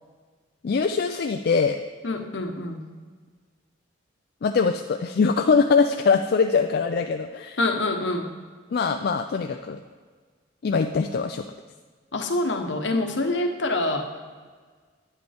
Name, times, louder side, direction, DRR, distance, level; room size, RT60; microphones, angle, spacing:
voice 1, 0.6-1.8 4.4-7.6 8.7-9.8 10.6-11.4, left 5 dB, 55° left, 5 dB, 0.4 m, -22 dB
voice 2, 2.0-2.8 7.6-8.3 12.1-14.1, left 2 dB, 70° left, 5 dB, 1.0 m, -26 dB
9.4 x 7.8 x 3.4 m, 1.5 s
head